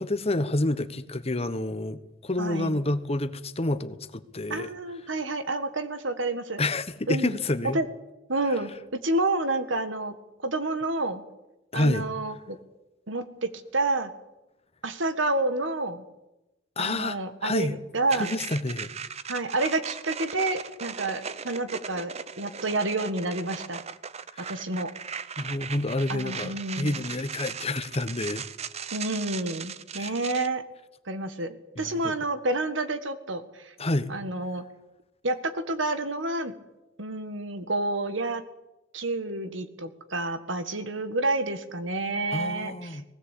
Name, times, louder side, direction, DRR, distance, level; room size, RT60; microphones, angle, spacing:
voice 1, 0.0-4.7 6.6-7.8 11.7-12.0 16.8-17.8 18.1-18.9 24.3-24.5 25.4-28.4 30.0-30.1 31.8-32.1 33.8-34.1 42.3-43.0, left 2 dB, 30° left, 1.1 m, -29 dB
voice 2, 2.4-2.8 4.5-6.6 7.1-7.4 7.7-7.9 8.3-10.1 10.4-11.2 11.7-12.6 13.1-14.1 14.8-16.0 16.8-18.3 19.3-22.1 22.4-23.8 24.5-24.9 26.1-27.0 28.9-30.6 31.0-33.7 34.1-34.6 35.2-36.5 37.0-38.4 38.9-43.0, right 2 dB, 75° right, 1.8 m, -29 dB
sound 1, 18.1-30.5, right 6 dB, 35° right, 0.7 m, -38 dB
19.5 x 16.5 x 8.5 m
head